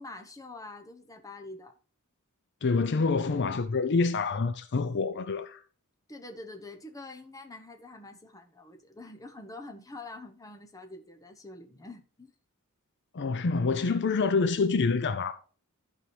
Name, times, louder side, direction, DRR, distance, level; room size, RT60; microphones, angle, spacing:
voice 1, 0.0-1.7 6.1-12.3, left 2 dB, 15° left, 1.0 m, -45 dB
voice 2, 2.6-5.6 13.1-15.3, left 4 dB, 55° left, 0.5 m, -27 dB
14.0 x 4.8 x 3.3 m
head